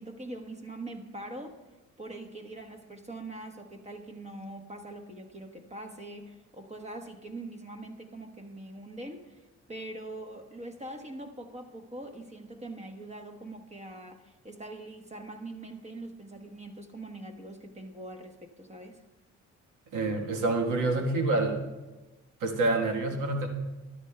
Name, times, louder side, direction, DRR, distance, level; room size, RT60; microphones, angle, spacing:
voice 1, 0.0-1.6 2.0-19.0, right 2 dB, 20° right, 5 dB, 1.1 m, -43 dB
voice 2, 19.9-21.6 22.4-23.5, right 2 dB, 85° right, 3 dB, 1.3 m, -27 dB
13.0 x 12.0 x 2.2 m, 1.1 s
cardioid pair, 90°, 30 cm